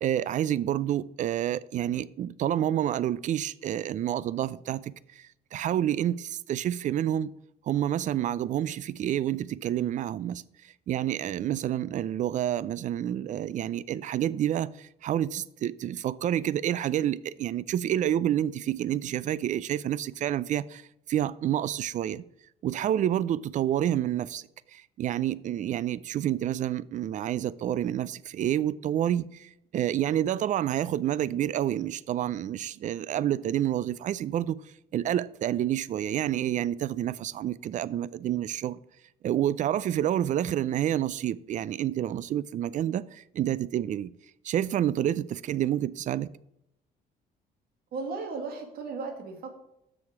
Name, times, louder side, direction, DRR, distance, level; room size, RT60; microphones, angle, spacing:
voice 1, 0.0-7.3 7.7-20.8 21.1-22.2 22.6-34.6 34.9-38.8 39.2-44.1 44.4-46.3, right 11 dB, 45° right, 0.4 m, -29 dB
voice 2, 47.9-49.5, right 4 dB, 65° right, 2.0 m, -35 dB
7.2 x 6.4 x 4.9 m
cardioid pair, 110°, 17 cm